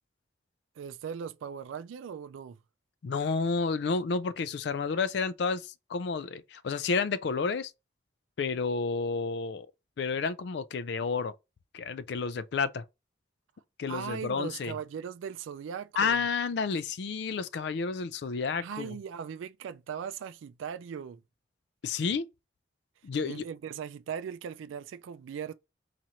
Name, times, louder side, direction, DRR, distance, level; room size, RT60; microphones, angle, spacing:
voice 1, 0.8-2.6 13.9-16.3 18.6-21.2 23.2-25.5, right 7 dB, 90° right, 0.3 m, -39 dB
voice 2, 3.0-7.7 8.4-9.7 10.0-11.3 11.7-12.8 13.8-14.7 16.0-19.0 21.8-22.3 23.0-23.4, left 5 dB, 60° left, 0.4 m, -30 dB
4.2 x 2.5 x 2.9 m
head